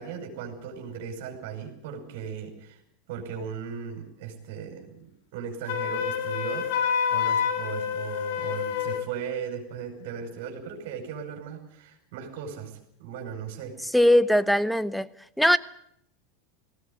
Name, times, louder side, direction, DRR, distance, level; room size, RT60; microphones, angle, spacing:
voice 1, 0.0-2.8 3.1-13.9, right 7 dB, 65° right, 3 dB, 5.4 m, -37 dB
Wind instrument woodwind instrument, 5.7-9.1, left 8 dB, 70° left, 3.0 m, -28 dB
voice 2, 13.9-15.1 15.4-15.6, equal, ahead, 16 dB, 1.0 m, -20 dB
19.5 x 16.5 x 9.5 m, 0.71 s
hypercardioid pair, 100°, 0 cm